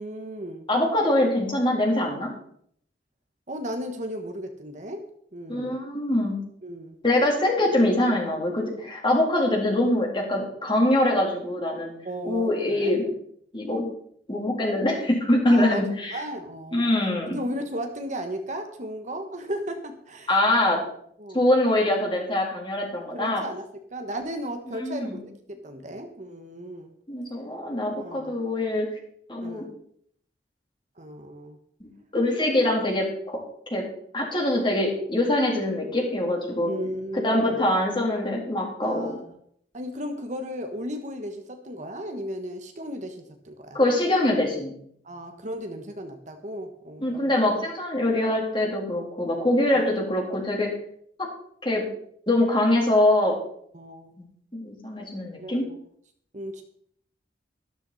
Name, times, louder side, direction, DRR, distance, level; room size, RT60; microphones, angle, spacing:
voice 1, 0.0-0.6 3.5-5.0 5.3-5.7 6.6-7.0 12.0-12.9 15.5-15.8 16.1-16.9 17.3-20.3 21.2-21.4 23.1-26.9 28.0-28.4 29.4-29.7 31.0-31.6 36.7-37.5 38.8-39.4 39.7-43.8 45.0-47.4 49.6-49.9 53.7-54.1 55.4-55.8 56.3-56.6, equal, 45° right, 5 dB, 1.5 m, -35 dB
voice 2, 0.7-2.3 5.5-6.4 7.0-11.9 12.2-13.1 13.5-13.8 14.3-16.2 16.7-17.4 20.3-20.8 21.3-23.4 24.7-25.2 27.1-28.9 29.3-29.6 31.8-33.4 33.7-33.8 34.1-36.7 37.1-39.1 43.7-44.7 47.0-50.7 51.2-51.3 51.6-51.8 52.3-53.4 54.5-55.7, left 1 dB, 25° left, -1 dB, 3.7 m, -23 dB
13.5 x 12.5 x 4.2 m, 0.66 s
head